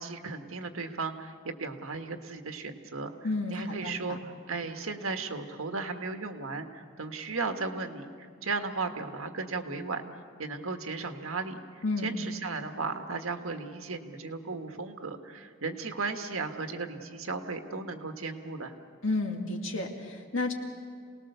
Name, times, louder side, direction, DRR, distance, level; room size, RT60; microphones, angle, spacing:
voice 1, 0.0-3.1 3.5-10.0 10.4-18.7, right 4 dB, 80° right, 6 dB, 1.5 m, -36 dB
voice 2, 3.2-4.2 11.8-12.2 19.0-20.5, left 2 dB, 65° left, 2 dB, 2.4 m, -31 dB
28.0 x 19.0 x 6.8 m, 2.1 s
head